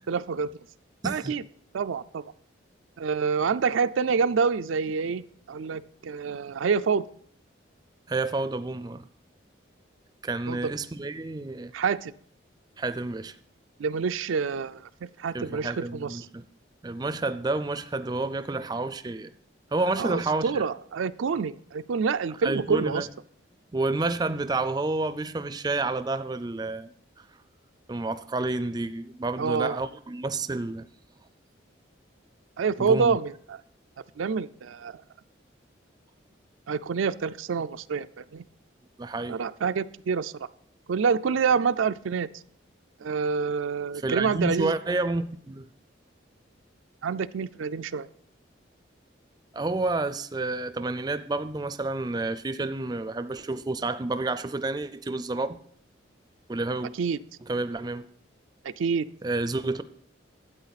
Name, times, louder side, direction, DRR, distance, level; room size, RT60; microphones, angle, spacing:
voice 1, 0.1-0.5 1.0-1.4 1.7-2.2 3.0-7.0 10.5-10.7 11.7-12.1 13.8-16.3 20.0-23.1 29.4-29.8 32.6-33.6 34.2-35.0 36.7-38.4 39.3-40.3 40.9-42.3 43.0-44.7 47.0-48.1 57.0-57.2 58.6-59.0, right 5 dB, 90° right, 0.4 m, -27 dB
voice 2, 1.0-1.3 8.1-9.1 10.2-11.7 12.8-13.4 15.3-16.4 16.8-19.3 19.7-20.7 22.4-23.1 23.7-26.9 27.9-30.9 32.8-33.2 39.0-39.4 44.0-45.7 49.5-55.6 56.5-56.9 57.4-58.1 59.2-59.8, right 2 dB, 20° right, 0.4 m, -29 dB
12.5 x 8.7 x 4.1 m
head